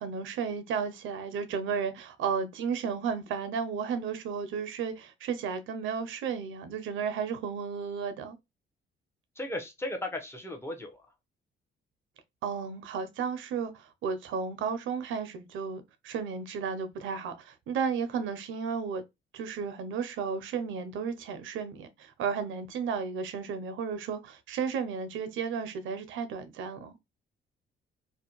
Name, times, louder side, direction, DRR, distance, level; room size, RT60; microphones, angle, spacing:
voice 1, 0.0-8.4 12.4-19.0 19.3-27.0, right 6 dB, 80° right, 0.5 m, -33 dB
voice 2, 9.4-11.1, left 1 dB, 10° left, 0.7 m, -36 dB
2.5 x 2.1 x 2.8 m
cardioid pair, 90°, 20 cm